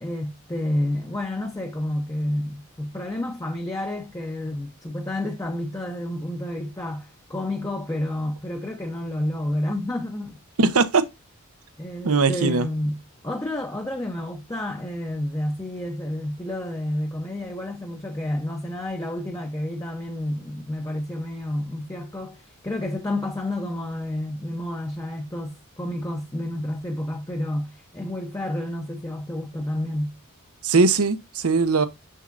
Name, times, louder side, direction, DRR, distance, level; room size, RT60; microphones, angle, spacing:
voice 1, 0.0-10.4 11.8-13.0 13.2-30.1, left 1 dB, 15° left, 0.7 m, -30 dB
voice 2, 10.6-11.1 12.0-12.7 30.6-31.9, right 4 dB, 85° right, 0.8 m, -20 dB
6.7 x 6.3 x 2.5 m
head